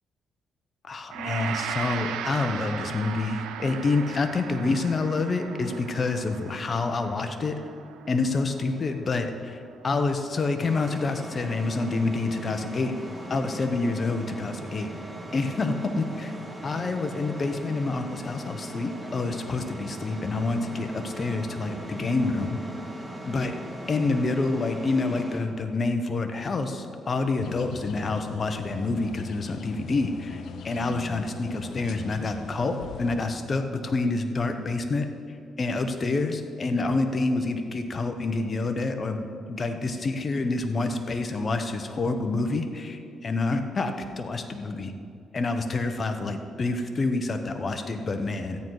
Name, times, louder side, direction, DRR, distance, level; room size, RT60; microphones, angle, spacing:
voice 1, 0.8-7.6 8.1-12.9 13.3-14.9 15.3-16.3 16.6-22.6 23.3-23.5 23.9-35.1 35.6-44.9 45.3-48.6, left 3 dB, 35° left, 6 dB, 1.1 m, -27 dB
Gong, 1.1-10.3, right 8 dB, 90° right, 0.6 m, -37 dB
sound 1, 10.6-25.4, right 1 dB, 15° right, 1.8 m, -39 dB
sound 2, 27.4-33.2, left 6 dB, 65° left, 0.7 m, -41 dB
13.5 x 9.2 x 4.8 m, 2.4 s
cardioid pair, 90°, 0 cm